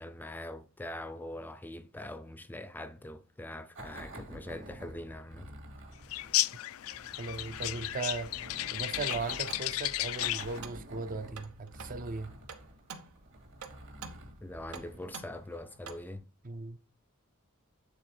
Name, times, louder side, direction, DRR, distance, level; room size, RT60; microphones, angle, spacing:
voice 1, 0.0-5.5 14.4-16.3, left 1 dB, 10° left, 0.5 m, -43 dB
sound 1, 3.7-15.9, right 1 dB, 60° right, 2.3 m, -49 dB
sound 2, 6.1-10.6, left 16 dB, 70° left, 0.4 m, -33 dB
voice 2, 7.2-8.3 8.7-12.3 16.4-16.8, right 3 dB, 40° right, 0.6 m, -38 dB
sound 3, 8.8-16.2, right 6 dB, 85° right, 1.0 m, -49 dB
9.0 x 4.1 x 4.3 m
head